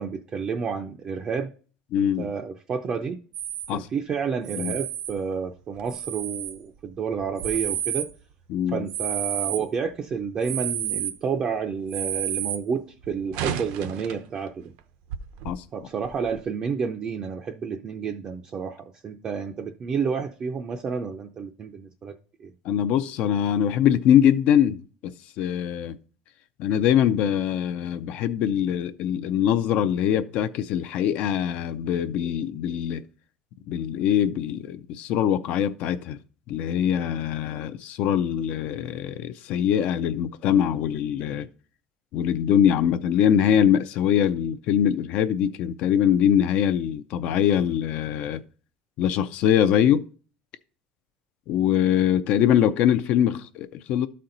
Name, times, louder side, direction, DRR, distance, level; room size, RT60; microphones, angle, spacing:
voice 1, 0.0-1.5 2.0-3.2 3.7-8.1 8.7-14.7 15.7-22.5, right 6 dB, 25° right, 0.5 m, -30 dB
voice 2, 1.9-2.3 3.7-3.9 4.6-4.8 8.5-8.8 15.4-15.6 22.6-25.1 25.4-26.0 26.6-33.0 33.7-36.2 36.5-41.5 42.1-48.4 49.0-50.1 51.5-54.1, left 9 dB, 50° left, 0.4 m, -23 dB
sound 1, 3.3-3.7 4.4-5.1 5.8-6.6 7.2-8.1 8.9-9.6 10.4-11.1 11.9-12.6 13.0-14.3 14.8-14.9 15.1-15.5 16.0-16.4, right 10 dB, 70° right, 0.7 m, -30 dB
12.0 x 4.3 x 3.9 m
cardioid pair, 165°, 3 cm